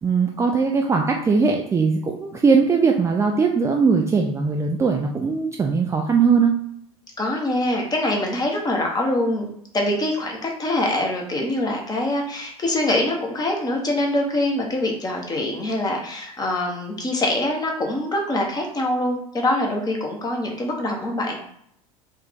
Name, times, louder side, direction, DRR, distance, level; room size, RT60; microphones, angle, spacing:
voice 1, 0.0-6.5, right 5 dB, 15° right, 1 dB, 0.4 m, -20 dB
voice 2, 7.2-21.4, left 1 dB, 20° left, 1 dB, 1.1 m, -24 dB
4.6 x 2.6 x 3.6 m, 0.68 s
figure-of-eight pair, 75°, 19 cm